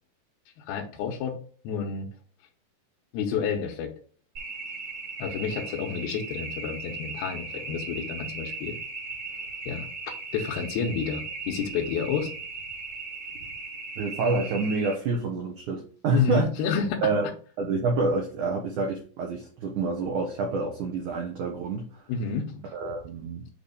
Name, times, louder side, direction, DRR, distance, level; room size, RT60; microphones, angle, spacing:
voice 1, 0.7-1.4 1.6-2.1 3.1-3.9 5.2-8.8 9.7-9.9 10.3-12.3 16.1-17.0 22.1-22.6, left 6 dB, 75° left, -1 dB, 2.7 m, -29 dB
sound 1, 4.3-14.9, right 3 dB, 45° right, 1.7 m, -37 dB
voice 2, 14.0-16.5 17.0-17.3 17.6-22.0 22.7-23.5, right 3 dB, 70° right, 1 dB, 1.9 m, -28 dB
7.9 x 3.3 x 5.1 m, 0.42 s
omnidirectional pair, 4.9 m